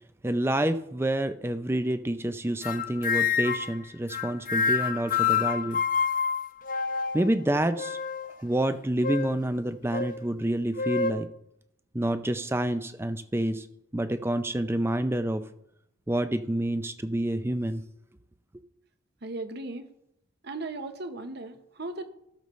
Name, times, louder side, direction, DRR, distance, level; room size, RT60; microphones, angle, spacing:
voice 1, 0.2-5.8 7.1-8.0 8.4-11.3 11.9-13.7 13.9-15.4 16.1-17.8, right 1 dB, 10° right, 10 dB, 0.4 m, -28 dB
sound 1, 2.6-3.7 4.1-7.3 7.8-8.4 9.0-9.4 9.9-10.1 10.8-11.1, left 6 dB, 40° left, 0.6 m, -27 dB
voice 2, 19.2-19.9 20.4-22.1, right 2 dB, 50° right, 8 dB, 0.9 m, -37 dB
16.0 x 6.8 x 3.1 m, 0.79 s
head